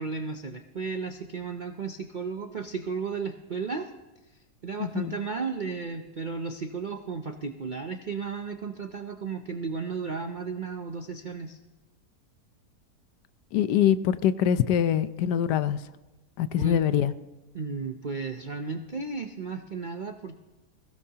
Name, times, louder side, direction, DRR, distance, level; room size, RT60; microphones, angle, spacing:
voice 1, 0.0-3.9 4.6-11.6 16.6-16.8 17.5-20.4, right 5 dB, 60° right, 5 dB, 0.5 m, -34 dB
voice 2, 4.8-5.2 13.5-15.8 16.4-17.1, left 10 dB, 80° left, 13 dB, 1.3 m, -24 dB
21.5 x 16.5 x 2.9 m, 1.1 s
omnidirectional pair, 1.7 m